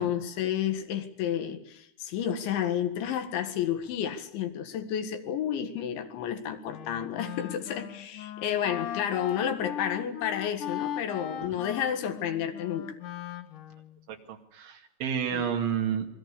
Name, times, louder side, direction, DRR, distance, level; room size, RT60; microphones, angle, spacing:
voice 1, 0.0-13.0 15.3-15.5, left 9 dB, 80° left, 7 dB, 4.1 m, -31 dB
Wind instrument woodwind instrument, 6.7-14.0, left 10 dB, 65° left, 2.2 m, -39 dB
voice 2, 14.1-16.1, right 8 dB, 85° right, 2 dB, 4.6 m, -30 dB
28.0 x 22.0 x 6.8 m, 0.76 s
omnidirectional pair, 5.3 m